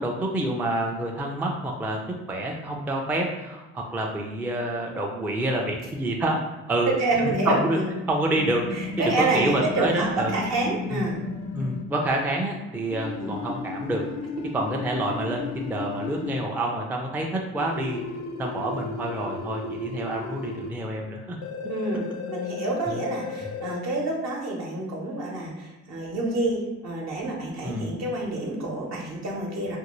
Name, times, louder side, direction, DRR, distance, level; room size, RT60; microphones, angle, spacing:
voice 1, 0.0-2.0 2.3-6.4 6.7-6.9 7.2-7.8 8.1-10.3 10.9-11.0 11.5-14.1 14.5-18.0 18.4-21.4 22.9-23.0 27.6-27.9, right 1 dB, 5° right, 0 dB, 0.3 m, -28 dB
voice 2, 6.9-7.9 8.7-11.2 13.2-13.3 21.7-29.8, right 2 dB, 60° right, -1 dB, 0.9 m, -28 dB
sound 1, 8.3-11.8 12.9-16.4 17.6-20.7 21.4-23.8, left 4 dB, 65° left, 0.4 m, -34 dB
2.6 x 2.6 x 2.9 m, 1.1 s
cardioid pair, 90°, 30 cm